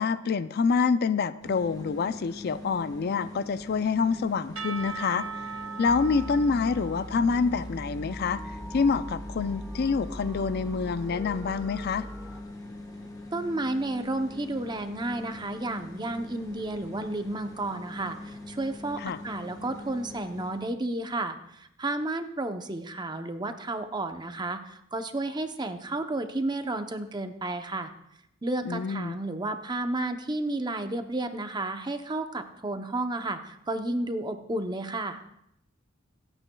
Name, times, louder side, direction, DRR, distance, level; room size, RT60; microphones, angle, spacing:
voice 1, 0.0-5.3 5.8-8.4 8.7-12.1 19.0-19.2 28.7-29.2, left 5 dB, 50° left, 14 dB, 0.4 m, -27 dB
sound 1, 1.4-20.7, left 2 dB, 20° left, 1.1 m, -42 dB
Percussion / Church bell, 4.6-8.4, right 6 dB, 80° right, 0.6 m, -40 dB
sound 2, 5.9-12.4, equal, 5° right, 1.0 m, -41 dB
voice 2, 13.3-27.9 28.4-35.2, right 2 dB, 20° right, 8 dB, 0.7 m, -32 dB
26.0 x 9.0 x 2.3 m, 0.76 s
head